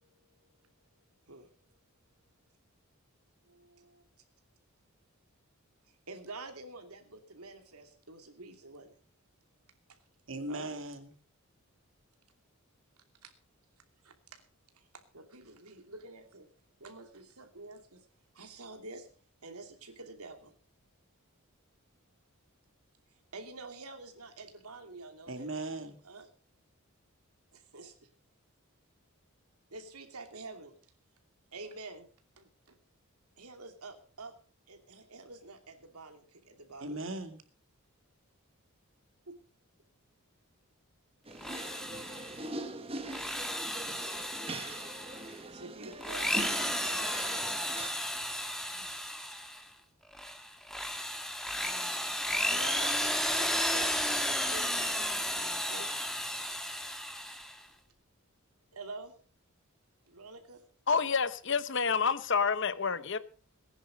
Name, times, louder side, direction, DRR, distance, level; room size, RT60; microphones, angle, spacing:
voice 1, 3.5-4.0 6.1-8.9 10.5-10.7 13.2-13.3 14.0-14.4 15.1-16.5 16.8-18.0 18.3-19.1 19.4-20.5 23.3-25.5 26.0-26.3 27.5-27.9 29.7-30.7 31.5-32.1 32.4-32.5 33.4-34.3 34.7-36.9 39.3-39.4 45.5-47.1 48.7-49.3 52.4-55.9 58.7-59.1 60.1-60.6, right 3 dB, 90° right, 2.7 m, -47 dB
voice 2, 10.3-11.1 25.3-26.0 36.8-37.4, right 2 dB, 60° right, 2.2 m, -38 dB
Drill, 41.3-42.5 43.0-45.4 45.9-49.6 50.1-57.6, equal, ahead, 1.4 m, -33 dB
sound 1, 41.3-47.9, right 2 dB, 25° right, 1.2 m, -42 dB
voice 3, 60.9-63.2, left 5 dB, 55° left, 0.9 m, -28 dB
19.0 x 10.5 x 5.2 m
head